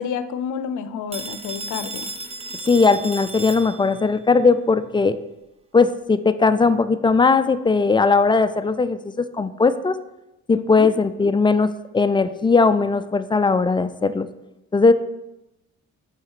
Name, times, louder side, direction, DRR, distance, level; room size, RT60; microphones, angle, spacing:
voice 1, 0.0-2.1 10.5-10.9, left 7 dB, 75° left, 12 dB, 0.6 m, -29 dB
Telephone, 1.1-4.1, right 2 dB, 20° right, 0.6 m, -34 dB
voice 2, 2.7-5.2 5.7-10.0 10.5-14.3 14.7-14.9, left 4 dB, 15° left, 12 dB, 0.3 m, -18 dB
6.3 x 4.9 x 4.7 m, 0.94 s
cardioid pair, 90°, 30 cm